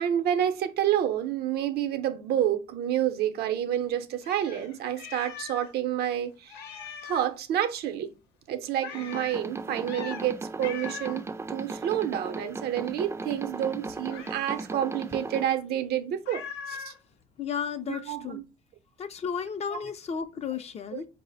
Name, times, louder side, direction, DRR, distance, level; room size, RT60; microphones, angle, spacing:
voice 1, 0.0-6.6 7.0-8.1 8.5-16.9 17.9-18.4 19.7-19.8 20.9-21.0, right 10 dB, 70° right, 0.6 m, -29 dB
Meow, 4.2-5.7 6.0-6.1 6.5-7.3 8.8-9.4 9.8-10.3 10.6-11.2 14.1-14.6 16.2-17.0, left 7 dB, 80° left, 0.7 m, -41 dB
sound 1, 8.9-15.4, right 3 dB, 15° right, 0.4 m, -37 dB
voice 2, 17.4-18.4 19.0-21.1, left 7 dB, 40° left, 0.5 m, -33 dB
4.7 x 2.0 x 4.0 m
cardioid pair, 110°, 17 cm